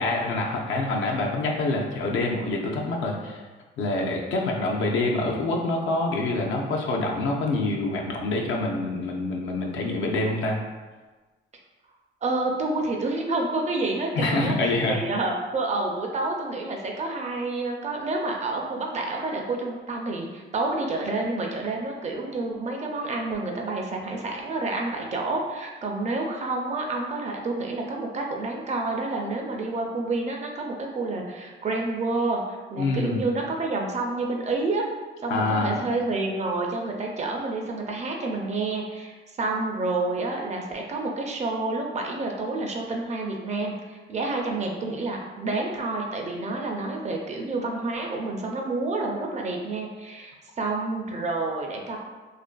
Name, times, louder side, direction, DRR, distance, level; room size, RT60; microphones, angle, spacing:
voice 1, 0.0-3.4 3.8-10.6 14.1-15.0 32.8-33.2 35.3-35.8, left 2 dB, 75° left, 0 dB, 0.5 m, -26 dB
voice 2, 12.2-34.9 35.2-52.0, right 2 dB, 35° right, 0 dB, 0.4 m, -29 dB
2.5 x 2.4 x 2.2 m, 1.3 s
cardioid pair, 90°, 20 cm